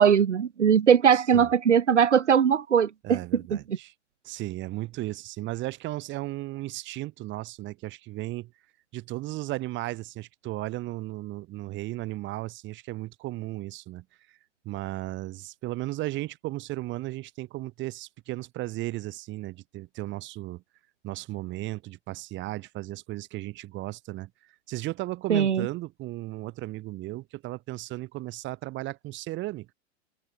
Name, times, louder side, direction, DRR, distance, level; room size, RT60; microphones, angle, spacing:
voice 1, 0.0-3.2 3.5-3.6 25.3-25.7, right 8 dB, 85° right, 0.9 m, -20 dB
voice 2, 1.1-1.5 3.0-3.9 4.2-8.5 8.9-14.4 14.6-20.6 21.0-24.3 24.7-29.7, right 18 dB, 35° right, 1.6 m, -35 dB
hypercardioid pair, 100°, 34 cm